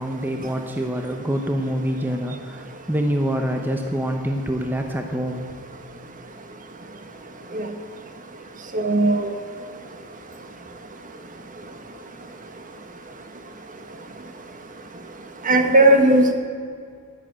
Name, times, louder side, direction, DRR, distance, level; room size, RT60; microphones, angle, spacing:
voice 1, 0.0-5.5, equal, 10° right, 4 dB, 0.9 m, -26 dB
voice 2, 8.7-9.3 15.4-16.3, right 1 dB, 35° right, 6 dB, 1.5 m, -16 dB
11.5 x 11.0 x 8.9 m, 2.2 s
head